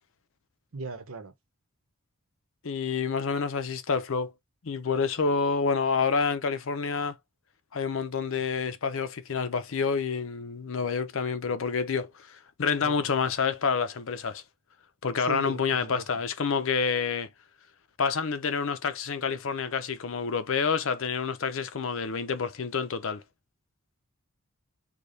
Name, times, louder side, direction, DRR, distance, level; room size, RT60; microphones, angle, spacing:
voice 1, 0.7-1.3 8.2-8.3 12.8-13.1 15.2-16.1, right 3 dB, 75° right, 0.9 m, -38 dB
voice 2, 2.6-4.3 4.6-7.1 7.7-14.4 15.0-17.3 18.0-23.2, left 5 dB, 65° left, 0.6 m, -28 dB
5.1 x 2.3 x 4.0 m
head